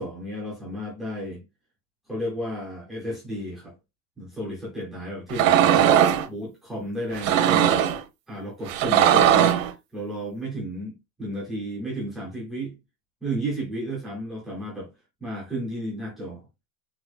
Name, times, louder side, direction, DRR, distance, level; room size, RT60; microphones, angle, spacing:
voice 1, 0.0-1.4 2.1-3.7 4.2-6.0 6.3-7.8 8.3-9.6 9.9-12.7 13.2-14.9 15.2-16.4, equal, ahead, 0.3 m, -33 dB
sound 1, 5.3-6.2 7.1-8.0 8.7-9.7, right 10 dB, 55° right, 0.8 m, -19 dB
4.9 x 4.2 x 2.3 m
supercardioid pair, 170°, 48 cm